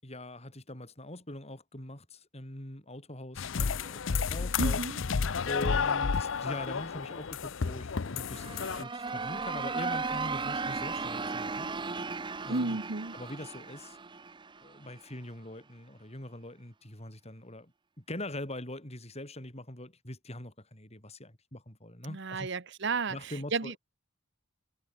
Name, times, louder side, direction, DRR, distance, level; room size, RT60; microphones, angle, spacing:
voice 1, 0.0-4.8 5.5-8.5 8.8-11.8 12.4-12.8 13.1-14.0 14.6-17.7 18.0-22.5 23.1-23.8, left 1 dB, 30° left, 6.8 m, -42 dB
sound 1, 3.4-8.8, left 5 dB, 70° left, 0.6 m, -31 dB
voice 2, 4.6-5.0 12.5-13.1 22.1-23.7, right 3 dB, 60° right, 1.2 m, -33 dB
sound 2, 8.2-15.0, right 4 dB, 25° right, 0.7 m, -36 dB
head